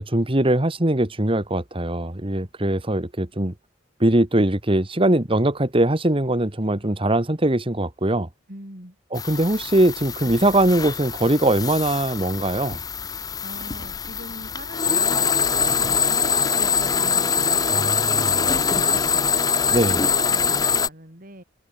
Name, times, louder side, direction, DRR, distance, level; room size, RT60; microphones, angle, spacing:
voice 1, 0.0-3.5 4.0-8.3 9.1-12.8 17.7-18.1 19.7-20.0, right 1 dB, 30° right, 1.9 m, -21 dB
voice 2, 8.5-9.0 13.4-21.4, right 1 dB, 50° right, 6.7 m, -41 dB
sound 1, 9.2-20.9, left 6 dB, 20° left, 0.5 m, -23 dB
head